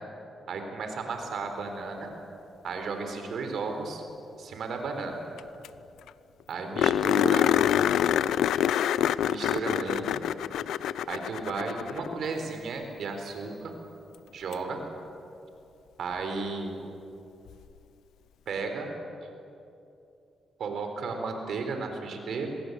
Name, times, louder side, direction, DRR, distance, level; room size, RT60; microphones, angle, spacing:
voice 1, 0.5-2.1 2.6-4.0 4.4-5.2 6.5-7.5 9.3-10.2 11.1-13.8 14.3-14.8 16.0-16.8 18.5-18.9 19.2-19.3 20.6-22.5, right 4 dB, 70° right, 5 dB, 4.1 m, -34 dB
sound 1, 5.4-5.5 5.6-5.7 6.1-6.2 6.8-12.2 14.5-14.6 17.5-17.6, left 10 dB, 90° left, 0.5 m, -26 dB
24.5 x 21.5 x 8.3 m, 2.8 s
cardioid pair, 70°, 0 cm